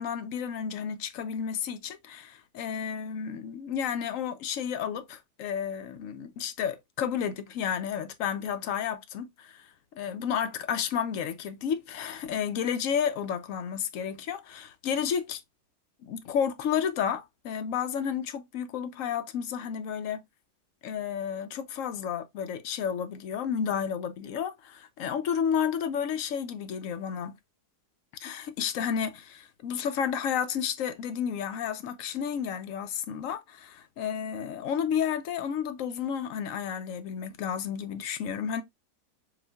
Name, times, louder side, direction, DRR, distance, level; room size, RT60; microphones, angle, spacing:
voice 1, 0.0-15.4 16.0-20.2 20.8-27.4 28.2-38.6, left 8 dB, 70° left, 0.8 m, -31 dB
6.9 x 2.4 x 2.2 m
omnidirectional pair, 1.8 m